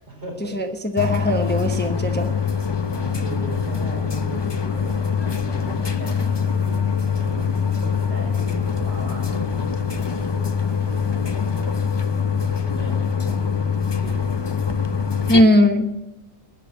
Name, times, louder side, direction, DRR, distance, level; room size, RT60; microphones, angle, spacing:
voice 1, 0.0-0.7 2.9-6.8 7.1-12.1 12.4-14.4, right 1 dB, 65° right, 0 dB, 4.6 m, -39 dB
voice 2, 0.5-2.3 15.3-16.0, left 1 dB, 10° left, 5 dB, 1.0 m, -19 dB
sound 1, 1.0-15.4, left 6 dB, 25° left, 0.6 m, -24 dB
20.0 x 7.1 x 9.3 m, 0.94 s
omnidirectional pair, 1.2 m